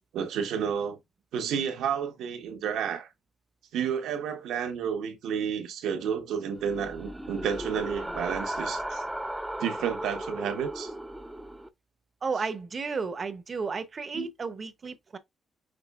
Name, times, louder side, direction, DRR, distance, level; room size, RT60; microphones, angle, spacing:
voice 1, 0.1-1.0 1.3-3.1 3.7-9.0 9.6-10.9 14.1-14.3, right 7 dB, 80° right, 1.1 m, -31 dB
sound 1, 6.6-11.7, right 1 dB, 5° right, 0.6 m, -36 dB
voice 2, 12.2-15.2, right 4 dB, 40° right, 0.8 m, -33 dB
6.0 x 3.1 x 2.4 m
cardioid pair, 90°, 0 cm